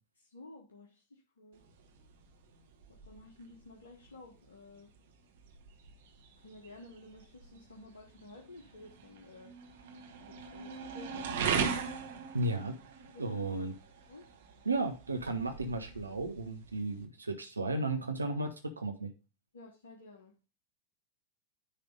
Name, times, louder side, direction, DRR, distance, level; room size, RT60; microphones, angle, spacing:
voice 1, 0.2-1.6 3.0-4.9 6.4-9.5 10.1-11.6 13.1-13.7 14.1-14.3 19.5-20.3, left 2 dB, 70° left, 0 dB, 1.2 m, -53 dB
sound 1, 1.5-17.1, right 6 dB, 60° right, 1.3 m, -41 dB
voice 2, 12.3-12.8 13.2-13.7 14.6-19.1, right 2 dB, 80° right, 5 dB, 0.8 m, -34 dB
9.8 x 3.4 x 5.1 m, 0.32 s
figure-of-eight pair, 90°, 0 cm